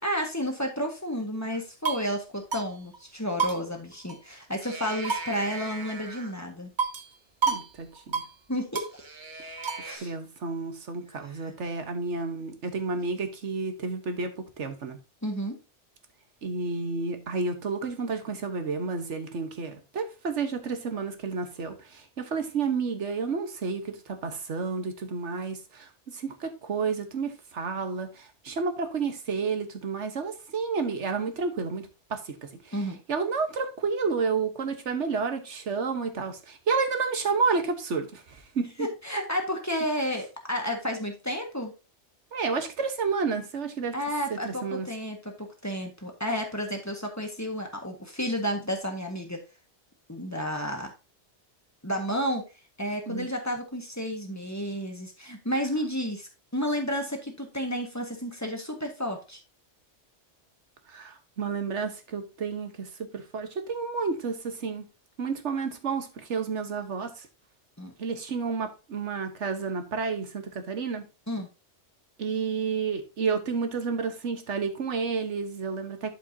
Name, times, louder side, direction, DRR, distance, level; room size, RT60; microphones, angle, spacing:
voice 1, 0.0-6.7 8.5-8.9 9.8-10.1 15.2-15.5 32.7-33.0 38.8-41.7 43.9-49.4 50.1-50.9 51.8-52.4 52.8-59.4 67.8-67.9 71.3-71.5, equal, 15° left, 1.6 m, -31 dB
sound 1, 1.5-2.1 2.5-2.7 2.9-3.0 3.4-4.4 4.6-6.3 6.8-7.1 7.4-7.7 7.9-8.3 8.7-10.0, right 5 dB, 45° right, 1.2 m, -31 dB
voice 2, 7.5-8.2 9.4-9.5 10.0-15.0 16.4-32.4 32.6-32.8 33.1-38.9 42.3-44.0 44.3-44.9 53.1-53.3 60.9-64.8 65.2-67.3 68.0-71.0 72.2-76.1, right 4 dB, 75° right, 1.5 m, -31 dB
11.0 x 5.6 x 2.8 m
omnidirectional pair, 1.2 m